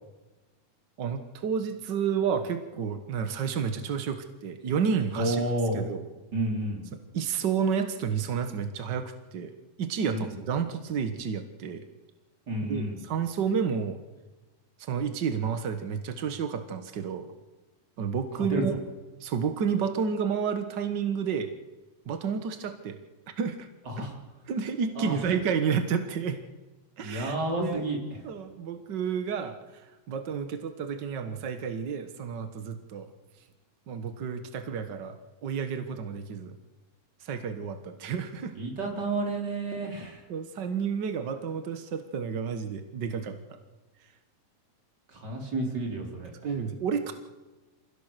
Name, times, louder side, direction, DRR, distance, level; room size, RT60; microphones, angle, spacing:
voice 1, 1.0-5.4 5.7-6.0 7.1-9.5 9.8-11.8 12.7-14.0 14.8-17.3 18.0-18.7 19.2-21.5 22.1-23.0 23.4-23.7 24.0-24.1 24.5-26.4 27.0-27.9 28.2-33.1 33.9-35.2 35.4-36.6 37.2-38.5 40.3-43.6 46.4-47.1, right 6 dB, 70° right, 8 dB, 1.0 m, -30 dB
voice 2, 5.2-5.8 6.3-6.8 10.1-10.3 12.5-13.0 18.5-18.6 23.9-24.1 25.0-25.2 27.0-28.0 38.5-40.2 45.1-46.5, right 1 dB, 30° right, 1 dB, 4.2 m, -30 dB
26.5 x 16.5 x 6.7 m, 1.2 s
omnidirectional pair, 4.0 m